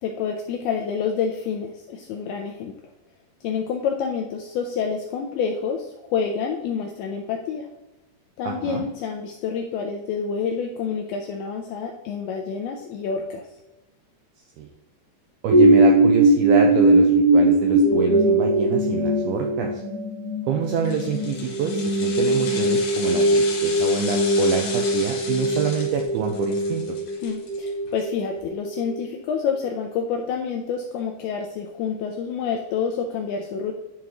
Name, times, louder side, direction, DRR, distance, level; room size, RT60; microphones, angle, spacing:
voice 1, 0.0-2.7 3.4-7.7 8.4-13.4 27.2-33.7, left 6 dB, 85° left, 2 dB, 2.2 m, -28 dB
voice 2, 8.4-8.9 14.6-14.7 15.4-19.8 20.5-26.8, right 7 dB, 85° right, 3 dB, 2.2 m, -27 dB
sound 1, 15.5-29.0 29.5-29.6, right 1 dB, 50° right, 3.0 m, -20 dB
sound 2, 20.7-28.0 28.3-28.4, left 4 dB, 65° left, 3.0 m, -35 dB
10.5 x 3.7 x 3.0 m, 0.99 s
omnidirectional pair, 5.0 m